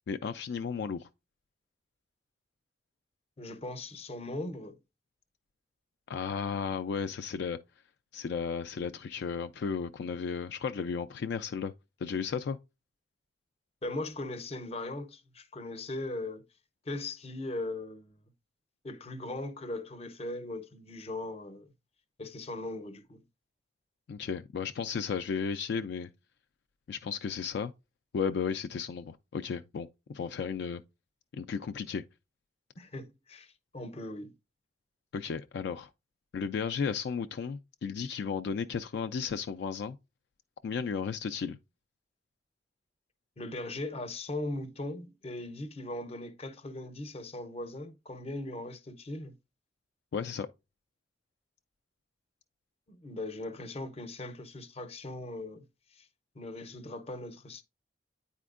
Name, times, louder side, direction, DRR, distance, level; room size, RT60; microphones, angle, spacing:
voice 1, 0.1-1.1 6.1-7.6 8.1-11.7 12.0-12.6 24.1-26.1 26.9-27.7 28.1-30.8 31.3-32.0 35.1-35.9 36.3-40.0 40.6-41.6 50.1-50.5, left 6 dB, 65° left, 0.3 m, -34 dB
voice 2, 3.4-4.8 13.8-16.4 16.9-18.2 18.8-21.7 22.2-23.2 32.8-34.3 43.4-49.3 52.9-55.6 55.9-56.1 56.4-57.6, left 2 dB, 35° left, 0.6 m, -39 dB
9.1 x 4.3 x 2.4 m
head